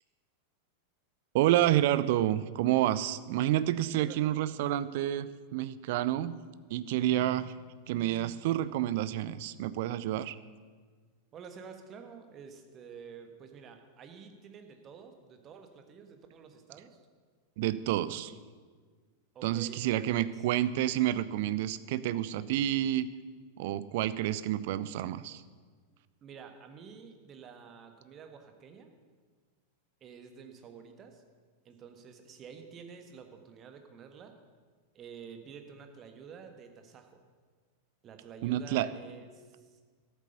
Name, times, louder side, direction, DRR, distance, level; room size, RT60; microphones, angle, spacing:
voice 1, 1.3-6.3 6.7-7.5 7.9-10.4 17.6-18.3 19.4-23.1 23.6-25.4 38.4-38.9, right 13 dB, 50° right, 16 dB, 0.5 m, -29 dB
voice 2, 11.3-17.0 19.3-20.5 26.2-28.9 30.0-31.2 31.6-34.3 34.9-37.2 38.0-39.8, right 6 dB, 30° right, 6 dB, 1.4 m, -50 dB
12.5 x 8.0 x 6.7 m, 1.5 s
figure-of-eight pair, 90°, 0 cm